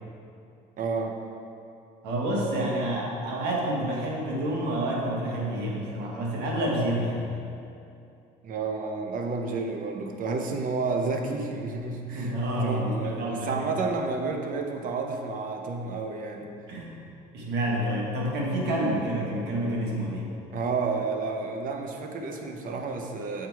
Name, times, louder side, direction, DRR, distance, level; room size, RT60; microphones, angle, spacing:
voice 1, 0.8-1.2 8.4-12.3 12.6-16.5 20.5-23.5, right 4 dB, 55° right, 4 dB, 0.7 m, -30 dB
voice 2, 2.0-7.3 12.1-13.7 16.7-17.0 17.3-20.3, right 1 dB, 80° right, -3 dB, 1.5 m, -28 dB
6.6 x 4.6 x 4.6 m, 2.6 s
cardioid pair, 110°, 17 cm